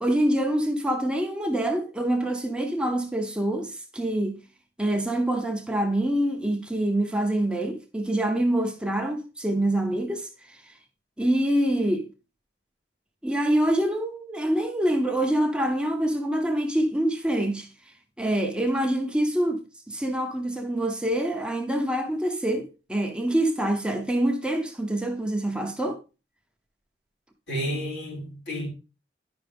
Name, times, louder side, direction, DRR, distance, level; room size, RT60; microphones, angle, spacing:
voice 1, 0.0-4.4 4.8-10.7 11.2-12.1 13.2-17.7 18.2-26.0, right 1 dB, 5° right, 0.9 m, -25 dB
voice 2, 27.5-28.7, equal, 85° left, 4.5 m, -31 dB
10.5 x 5.9 x 3.5 m
head